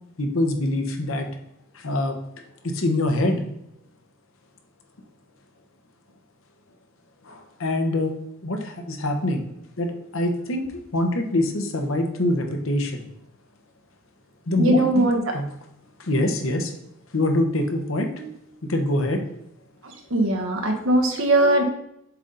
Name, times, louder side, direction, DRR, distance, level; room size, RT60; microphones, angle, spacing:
voice 1, 0.2-1.3 1.7-2.2 2.6-3.4 7.2-8.1 8.4-9.4 9.8-10.7 10.9-13.0 14.5-15.4 16.0-16.7 17.1-18.1 18.6-19.3, left 1 dB, 70° left, 4 dB, 1.0 m, -24 dB
voice 2, 14.6-15.2 18.2-18.3 19.8-21.6, right 1 dB, 65° right, 3 dB, 1.3 m, -20 dB
7.2 x 4.0 x 3.9 m, 0.78 s
head